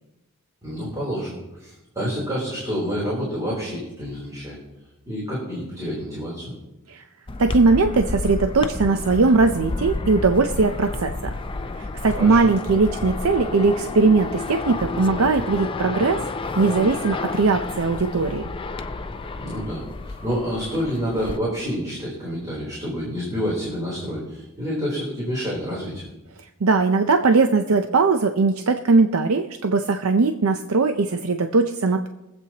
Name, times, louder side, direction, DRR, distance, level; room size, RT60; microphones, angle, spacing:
voice 1, 0.6-4.6 5.1-6.5 12.1-12.4 19.4-19.8 20.2-26.0, equal, 15° right, -6 dB, 3.5 m, -28 dB
sound 1, 7.3-21.4, left 3 dB, 25° left, 0.5 m, -31 dB
voice 2, 7.4-11.3 11.8-16.2 16.6-18.4 26.6-32.1, right 3 dB, 75° right, 7 dB, 0.6 m, -19 dB
23.5 x 8.1 x 2.9 m, 0.97 s
head